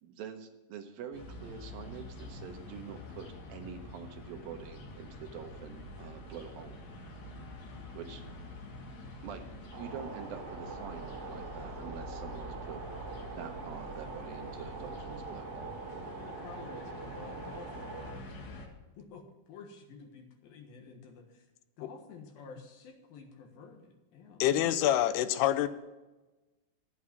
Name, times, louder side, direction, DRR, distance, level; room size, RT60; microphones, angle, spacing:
voice 1, 0.0-6.8 7.9-8.2 9.2-12.8 13.3-15.7, right 7 dB, 75° right, 6 dB, 2.5 m, -46 dB
sound 1, 1.1-18.7, left 1 dB, 55° left, 2.5 m, -46 dB
sound 2, 9.7-18.1, right 4 dB, 50° right, 3.5 m, -44 dB
voice 2, 16.2-18.0 18.3-18.4 19.0-21.4 21.8-24.5, left 5 dB, 70° left, 4 dB, 3.1 m, -51 dB
voice 3, 24.4-25.7, left 12 dB, 90° left, 13 dB, 2.7 m, -26 dB
11.5 x 8.5 x 6.0 m, 1.1 s
omnidirectional pair, 4.5 m